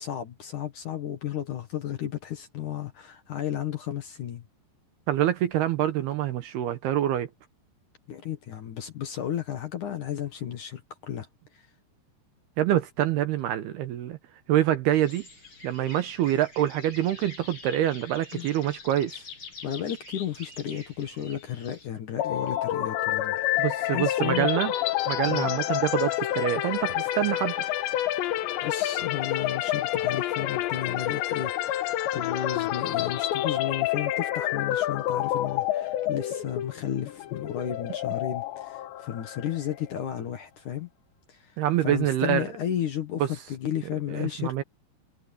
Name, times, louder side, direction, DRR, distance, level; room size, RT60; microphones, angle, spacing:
voice 1, 0.0-4.5 8.1-11.3 11.5-11.7 18.3-18.5 19.6-24.5 25.3-25.6 28.6-31.9 32.1-40.9 41.3-44.6, left 10 dB, 60° left, 2.3 m, -33 dB
voice 2, 5.1-7.3 12.6-14.2 14.5-15.2 15.6-19.2 23.6-24.7 25.1-27.5 41.6-42.5 44.1-44.6, right 12 dB, 70° right, 2.7 m, -26 dB
sound 1, 14.9-21.9, left 4 dB, 30° left, 7.7 m, -45 dB
sound 2, 22.2-39.9, left 13 dB, 75° left, 3.3 m, -28 dB
omnidirectional pair, 5.3 m